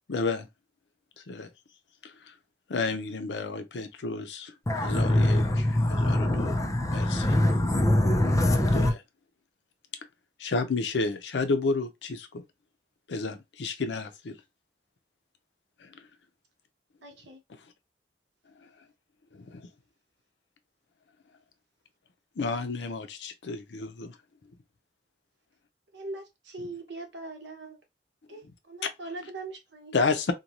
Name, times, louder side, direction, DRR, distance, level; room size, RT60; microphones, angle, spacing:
voice 1, 0.1-0.5 1.3-1.5 2.0-2.1 2.7-4.5 4.8-5.4 5.9-6.6 6.9-7.3 8.7-9.0 10.4-12.4 13.1-14.4 15.8-16.1 19.3-19.6 22.4-24.2 28.8-28.9 29.9-30.3, left 3 dB, 80° left, 0.5 m, -31 dB
voice 2, 4.7-8.9, left 1 dB, 20° left, 0.5 m, -23 dB
voice 3, 17.0-17.4 25.9-27.8 28.3-29.9, right 2 dB, 85° right, 0.9 m, -41 dB
2.6 x 2.2 x 2.9 m
head